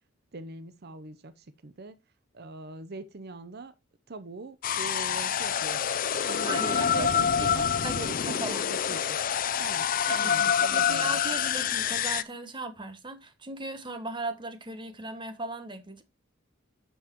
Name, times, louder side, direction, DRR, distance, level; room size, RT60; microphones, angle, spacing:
voice 1, 0.3-2.0 2.3-3.7 4.1-5.8 6.2-9.2 9.6-11.2, right 3 dB, 50° right, 0.7 m, -42 dB
sound 1, 4.6-12.2, left 8 dB, 40° left, 0.5 m, -27 dB
voice 2, 6.5-7.2 7.8-7.9 8.3-8.6 10.1-16.0, right 2 dB, 25° right, 1.2 m, -37 dB
9.4 x 7.1 x 3.0 m
head